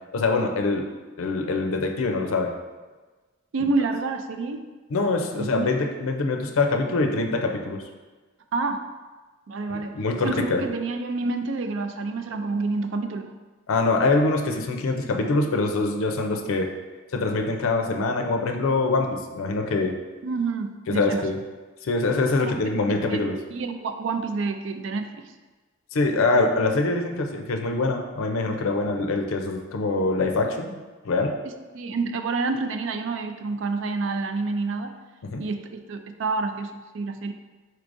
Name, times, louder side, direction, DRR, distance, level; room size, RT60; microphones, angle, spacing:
voice 1, 0.1-0.9 1.2-2.5 4.9-7.8 9.7-10.6 13.7-16.7 17.1-20.0 20.9-21.4 21.8-23.4 25.9-30.8 31.0-31.4 35.2-35.4, left 3 dB, 90° left, 3 dB, 0.5 m, -24 dB
voice 2, 3.5-4.6 5.4-5.8 8.5-8.8 9.5-10.0 10.2-13.3 20.2-21.2 22.4-22.5 23.0-25.2 31.4-34.9 35.4-37.3, right 3 dB, 65° right, 7 dB, 0.4 m, -28 dB
4.7 x 4.4 x 2.5 m, 1.3 s
head